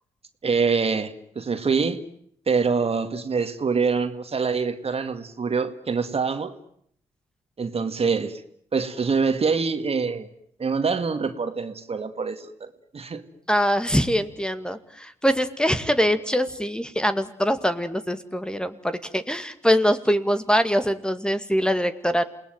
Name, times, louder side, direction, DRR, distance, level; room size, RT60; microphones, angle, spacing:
voice 1, 0.4-2.0 2.5-6.5 7.6-8.4 8.7-10.3 10.6-13.2, right 5 dB, 45° right, 9 dB, 2.2 m, -25 dB
voice 2, 13.5-22.2, equal, 5° left, 10 dB, 2.2 m, -23 dB
28.5 x 19.0 x 9.2 m, 0.68 s
hypercardioid pair, 45°, 14 cm